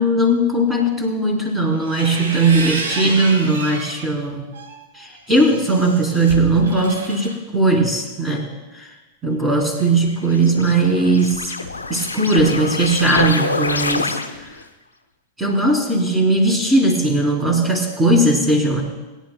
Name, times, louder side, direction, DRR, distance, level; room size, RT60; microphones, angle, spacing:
voice 1, 0.0-4.5 4.9-8.5 8.7-8.9 9.2-11.6 11.9-14.1 15.4-18.8, right 2 dB, 15° right, 1 dB, 3.1 m, -18 dB
sound 1, 1.7-4.1 4.5-7.3, right 3 dB, 60° right, 2.2 m, -30 dB
sound 2, 9.7-14.6, left 3 dB, 80° left, 0.8 m, -26 dB
21.0 x 10.0 x 2.3 m, 1.1 s
figure-of-eight pair, 90°, 0 cm